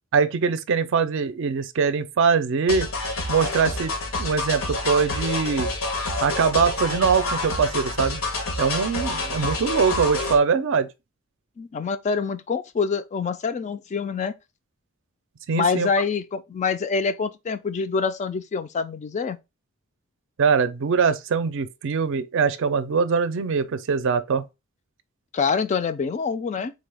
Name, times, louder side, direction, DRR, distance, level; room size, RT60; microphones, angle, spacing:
voice 1, 0.1-2.9 3.3-3.9 4.2-5.7 6.2-8.2 8.6-10.9 15.5-15.9 20.4-24.4, right 5 dB, 65° right, 0.4 m, -22 dB
sound 1, 2.7-10.4, left 2 dB, 85° left, 0.9 m, -28 dB
voice 2, 11.6-14.3 15.5-19.4 25.3-26.7, left 5 dB, 35° left, 0.3 m, -26 dB
3.8 x 2.2 x 3.3 m
head